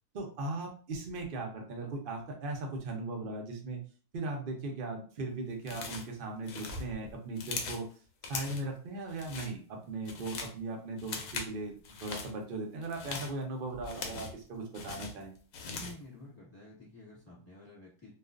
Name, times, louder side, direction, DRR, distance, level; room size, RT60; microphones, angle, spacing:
voice 1, 0.1-3.8 4.1-7.9 8.3-15.3, right 2 dB, 75° right, 1 dB, 0.5 m, -38 dB
sound 1, 5.6-6.1 6.4-7.9 8.2-8.7 9.1-9.5 9.9-10.6 11.0-11.5 11.8-12.3 12.8-14.4 14.7-16.0, left 4 dB, 70° left, 0.9 m, -40 dB
voice 2, 15.6-18.1, left 1 dB, 10° left, -7 dB, 1.0 m, -51 dB
2.4 x 2.3 x 2.3 m, 0.41 s
omnidirectional pair, 1.7 m